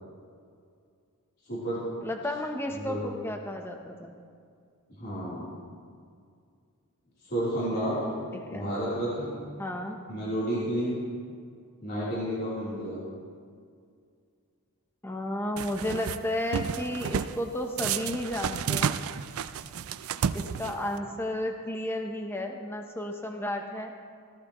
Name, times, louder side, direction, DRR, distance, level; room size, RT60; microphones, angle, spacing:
voice 1, 1.5-1.8 2.7-3.0 5.0-5.5 7.3-8.0 8.5-9.3 10.1-11.1 11.8-13.0 20.4-20.8, equal, 45° left, -10 dB, 3.5 m, -31 dB
voice 2, 2.0-4.2 8.3-8.8 9.6-10.0 15.0-19.0 20.3-23.9, left 1 dB, 10° left, 3 dB, 0.8 m, -33 dB
sound 1, 15.6-16.2 16.5-17.4 17.8-21.0, right 7 dB, 70° right, 0.4 m, -31 dB
16.0 x 15.0 x 3.1 m, 2.2 s
head